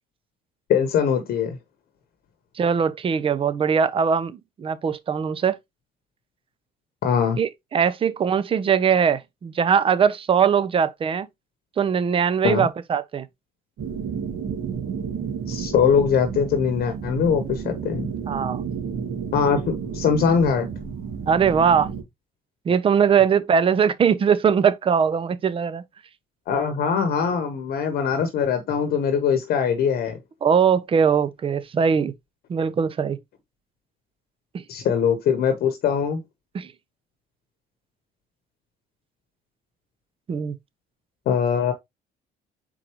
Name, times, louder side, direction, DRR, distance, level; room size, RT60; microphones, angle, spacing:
voice 1, 0.7-1.6 7.0-7.4 12.4-12.7 15.5-18.1 19.3-20.7 26.5-30.2 34.7-36.2 41.3-41.7, left 7 dB, 65° left, 0.9 m, -22 dB
voice 2, 2.6-5.6 7.4-11.3 11.8-13.3 18.3-18.6 21.3-21.9 22.7-25.8 30.4-32.1 32.5-33.2 34.5-34.6 36.5-36.7 40.3-40.6, right 7 dB, 30° right, 0.5 m, -21 dB
sound 1, 13.8-22.0, right 7 dB, 65° right, 2.1 m, -31 dB
4.6 x 3.8 x 3.0 m
cardioid pair, 110°, 17 cm